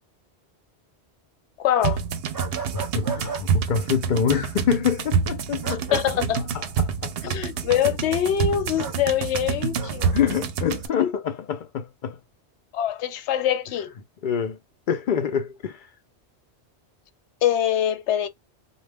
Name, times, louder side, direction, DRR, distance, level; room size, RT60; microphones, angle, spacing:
voice 1, 1.6-2.0 5.6-6.4 7.2-10.1 11.0-11.1 12.7-13.9 17.4-18.3, left 10 dB, 85° left, 0.9 m, -24 dB
sound 1, 1.8-10.9, right 6 dB, 70° right, 0.7 m, -27 dB
sound 2, 2.3-3.4 5.6-6.1 8.8-9.0 9.8-10.1, right 5 dB, 20° right, 0.7 m, -34 dB
voice 2, 2.7-6.0 6.3-7.4 10.1-12.2 14.2-14.6 14.9-15.9, left 7 dB, 55° left, 0.6 m, -26 dB
2.3 x 2.0 x 3.3 m
omnidirectional pair, 1.1 m